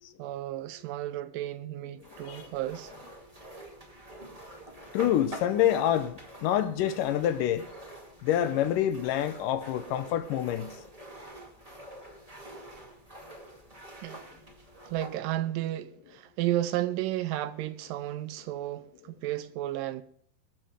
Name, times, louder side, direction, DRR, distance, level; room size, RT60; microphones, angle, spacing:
voice 1, 0.2-2.9 14.0-14.3 14.8-20.0, right 14 dB, 80° right, 2.1 m, -33 dB
sound 1, 2.0-15.2, right 2 dB, 25° right, 0.8 m, -46 dB
voice 2, 4.9-7.6 8.2-10.7, left 11 dB, 75° left, 2.2 m, -27 dB
20.0 x 7.4 x 5.1 m
omnidirectional pair, 4.3 m